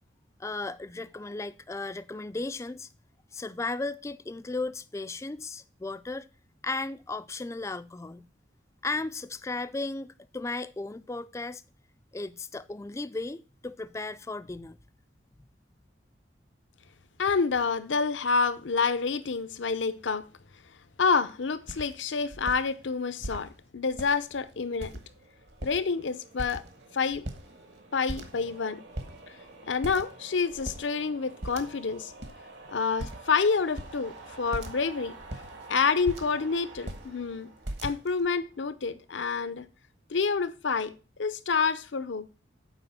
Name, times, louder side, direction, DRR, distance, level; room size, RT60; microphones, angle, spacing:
voice 1, 0.4-2.9 3.3-6.3 6.6-8.3 8.8-11.6 12.1-14.8, left 3 dB, 15° left, 0.3 m, -35 dB
voice 2, 17.2-20.2 21.0-25.0 25.6-26.6 26.9-27.2 27.9-28.8 29.7-32.1 32.7-35.1 35.7-37.5 37.8-39.6 40.1-40.9 41.2-42.2, left 5 dB, 80° left, 0.7 m, -28 dB
sound 1, 21.3-21.4 21.7-21.9 22.3-22.6 23.2-23.5 23.9-24.4 24.8-25.2 25.5-26.0 26.4-26.8 27.1-27.8 28.1-28.6 29.0-29.2 29.8-30.2 30.5-30.8 31.4-31.9 32.2-32.3 33.0-33.3 33.8-34.0 34.5-34.8 35.2-36.4 36.7-37.1 37.6-38.3, right 1 dB, 65° right, 1.4 m, -39 dB
sound 2, 24.5-38.9, right 3 dB, 80° right, 2.3 m, -50 dB
7.8 x 4.9 x 5.9 m
head